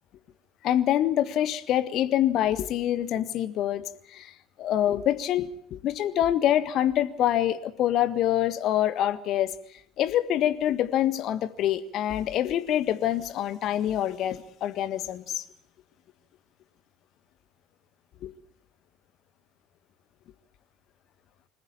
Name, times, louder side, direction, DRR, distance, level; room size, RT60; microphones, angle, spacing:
voice 1, 0.6-4.3 4.6-9.5 10.0-15.4 18.2-18.3, left 11 dB, 50° left, 12 dB, 1.6 m, -26 dB
26.0 x 14.5 x 8.7 m, 0.73 s
figure-of-eight pair, 60°, 0 cm